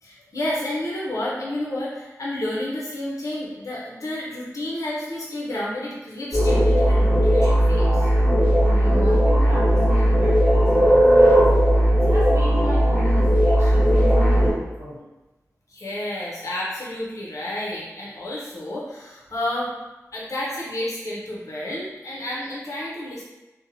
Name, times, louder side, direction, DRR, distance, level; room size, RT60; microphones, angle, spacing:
voice 1, 0.0-8.1 15.7-19.7 20.1-23.2, left 1 dB, 60° left, -5 dB, 0.6 m, -30 dB
sound 1, 6.3-14.5, equal, 20° left, 1.3 m, -17 dB
voice 2, 8.5-11.5 11.9-15.0, equal, 50° right, -6 dB, 0.7 m, -33 dB
2.7 x 2.1 x 2.6 m, 1.1 s
cardioid pair, 45°, 6 cm